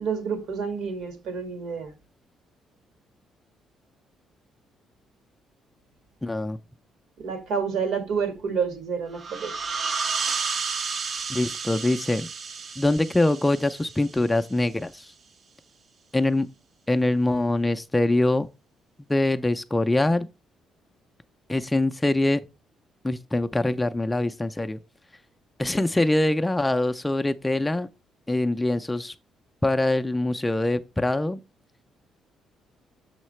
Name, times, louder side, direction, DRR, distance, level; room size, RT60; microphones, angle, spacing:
voice 1, 0.0-1.9 7.2-9.5, right 6 dB, 75° right, 1.8 m, -29 dB
voice 2, 6.2-6.6 11.3-12.3 12.8-15.1 16.1-16.5 16.9-18.5 19.1-20.3 21.5-22.4 23.0-24.8 25.6-27.9 28.3-29.1 29.6-31.4, left 2 dB, 10° left, 0.4 m, -23 dB
sound 1, 9.1-14.5, right 5 dB, 45° right, 0.6 m, -32 dB
6.6 x 6.4 x 3.0 m
cardioid pair, 130°, 0 cm